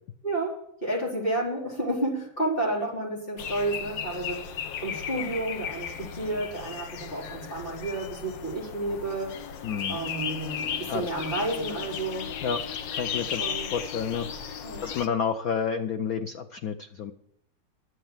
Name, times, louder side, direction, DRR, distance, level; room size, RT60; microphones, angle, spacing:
voice 1, 0.2-4.4 4.8-9.3 9.9-12.3 13.4-13.7 14.6-14.9, right 2 dB, 25° left, -4 dB, 4.5 m, -31 dB
sound 1, 3.4-15.1, left 8 dB, 65° left, 1.4 m, -35 dB
voice 2, 9.6-10.0 10.9-11.1 12.4-12.6 12.9-13.5 13.7-17.1, left 6 dB, 90° left, 7 dB, 0.7 m, -30 dB
11.5 x 8.9 x 7.2 m, 0.73 s
omnidirectional pair, 2.4 m